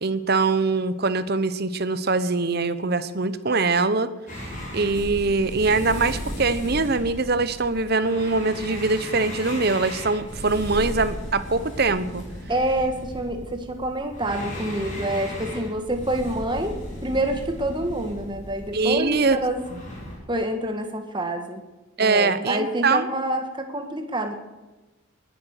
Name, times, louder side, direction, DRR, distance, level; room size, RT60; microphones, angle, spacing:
voice 1, 0.0-4.1 4.7-12.2 18.7-19.4 22.0-23.1, right 3 dB, 50° right, 13 dB, 1.0 m, -23 dB
sound 1, 4.3-20.1, equal, 35° left, 6.7 m, -36 dB
voice 2, 12.5-19.6 20.3-21.6 22.0-24.3, right 1 dB, 20° right, 5 dB, 1.6 m, -27 dB
20.5 x 10.5 x 6.7 m, 1.1 s
head